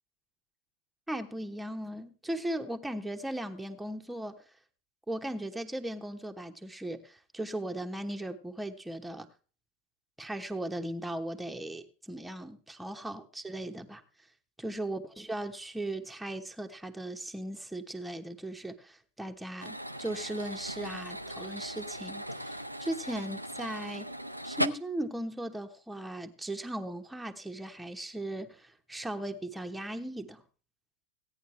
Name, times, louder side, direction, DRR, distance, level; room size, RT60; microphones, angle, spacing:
voice 1, 1.1-4.4 5.1-9.3 10.2-14.0 14.6-24.1 24.4-30.4, right 1 dB, 5° right, 4 dB, 1.1 m, -38 dB
sound 1, 19.6-24.7, equal, 90° right, 0.6 m, -37 dB
16.5 x 9.5 x 3.3 m, 0.37 s
figure-of-eight pair, 90°, 0 cm